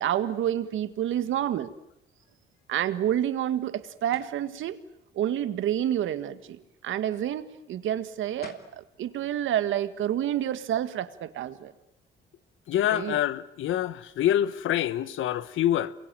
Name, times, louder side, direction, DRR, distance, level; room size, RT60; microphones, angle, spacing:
voice 1, 0.0-1.7 2.7-4.8 5.2-11.7 12.9-13.2, right 11 dB, 80° right, 1.8 m, -29 dB
sound 1, 4.1-4.4 8.1-8.2 8.4-8.8, left 5 dB, 50° left, 3.5 m, -46 dB
voice 2, 12.7-15.9, left 12 dB, 80° left, 1.2 m, -26 dB
27.5 x 22.5 x 9.2 m
cardioid pair, 90°, 20 cm